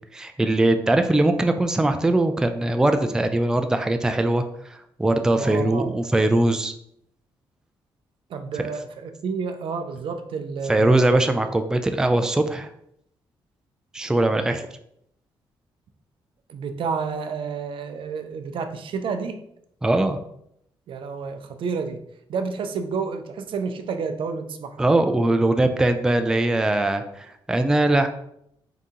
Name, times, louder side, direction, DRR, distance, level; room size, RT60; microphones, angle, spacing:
voice 1, 0.1-6.7 10.7-12.7 13.9-14.6 19.8-20.2 24.8-28.1, right 2 dB, 5° right, 7 dB, 0.3 m, -21 dB
voice 2, 5.4-5.9 8.3-11.2 16.5-19.4 20.9-22.0 22.3-24.9, right 5 dB, 65° right, 7 dB, 0.5 m, -30 dB
3.9 x 2.7 x 3.6 m, 0.73 s
cardioid pair, 105°, 9 cm